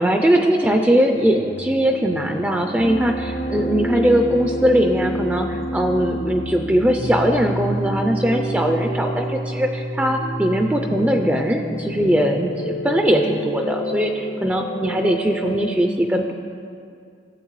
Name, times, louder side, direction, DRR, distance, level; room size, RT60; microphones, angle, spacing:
voice 1, 0.0-16.3, equal, 10° right, 4 dB, 0.3 m, -20 dB
sound 1, 1.4-15.7, equal, 85° left, 1.0 m, -28 dB
16.0 x 7.1 x 3.1 m, 2.4 s
head